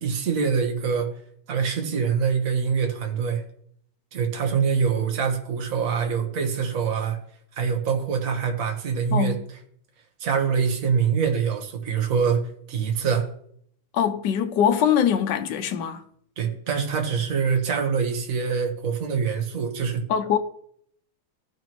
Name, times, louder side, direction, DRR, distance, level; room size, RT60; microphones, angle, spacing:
voice 1, 0.0-1.1 1.5-3.4 4.1-7.2 7.6-9.4 10.2-12.4 12.7-13.3 16.4-20.0, right 6 dB, 45° right, 1.5 m, -24 dB
voice 2, 9.1-9.4 13.9-16.0 20.1-20.4, left 8 dB, 65° left, 1.3 m, -22 dB
15.5 x 6.1 x 3.0 m
omnidirectional pair, 2.2 m